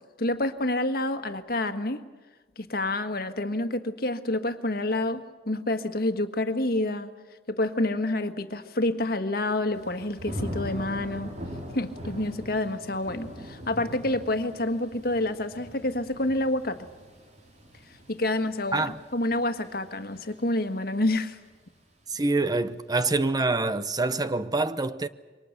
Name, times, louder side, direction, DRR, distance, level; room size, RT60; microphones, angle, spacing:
voice 1, 0.0-2.0 2.6-7.1 7.5-11.4 11.7-16.9 18.1-21.4, left 1 dB, 60° left, 1.6 m, -28 dB
Thunder / Rain, 9.7-20.7 21.1-21.6, equal, 40° right, 3.4 m, -41 dB
voice 2, 22.1-25.1, right 3 dB, 20° right, 0.7 m, -26 dB
27.5 x 24.0 x 6.6 m
head